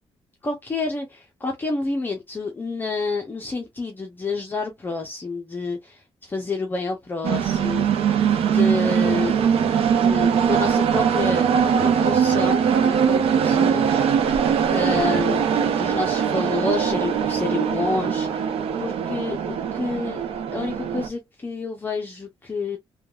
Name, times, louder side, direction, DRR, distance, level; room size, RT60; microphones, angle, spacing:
voice 1, 0.4-7.9 8.3-9.4 10.0-11.5 11.8-14.0 14.7-20.2 20.5-22.8, left 3 dB, 20° left, 0.6 m, -29 dB
sound 1, 7.2-21.1, right 7 dB, 85° right, 0.5 m, -21 dB
3.4 x 2.2 x 2.3 m
wide cardioid pair, 150°, 10 cm